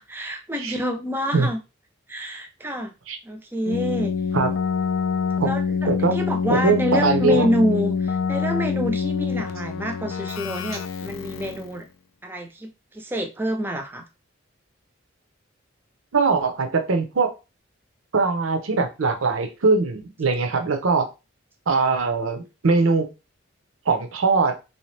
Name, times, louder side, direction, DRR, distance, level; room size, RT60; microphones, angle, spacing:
voice 1, 0.0-1.6 2.1-2.9 3.2-4.1 5.4-11.8 12.2-14.0, equal, 10° right, 5 dB, 0.5 m, -27 dB
Keyboard (musical), 3.7-11.8, left 5 dB, 75° left, 0.4 m, -26 dB
voice 2, 5.9-6.2 6.5-7.5 16.1-17.3 18.1-21.0 21.7-23.1 23.9-24.5, right 4 dB, 80° right, 6 dB, 0.7 m, -21 dB
3.4 x 2.8 x 3.2 m, 0.28 s
head